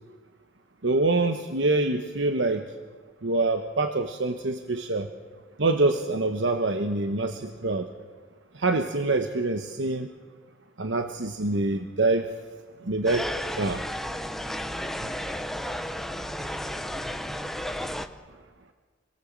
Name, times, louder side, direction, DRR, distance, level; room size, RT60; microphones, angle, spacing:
voice 1, 0.8-2.6 3.2-5.1 5.6-7.9 8.5-10.1 10.8-12.3 12.8-13.3 13.6-13.8, right 2 dB, 70° right, 6 dB, 1.1 m, -25 dB
sound 1, 13.1-18.1, equal, ahead, 0.9 m, -33 dB
26.0 x 17.5 x 7.5 m, 1.5 s
head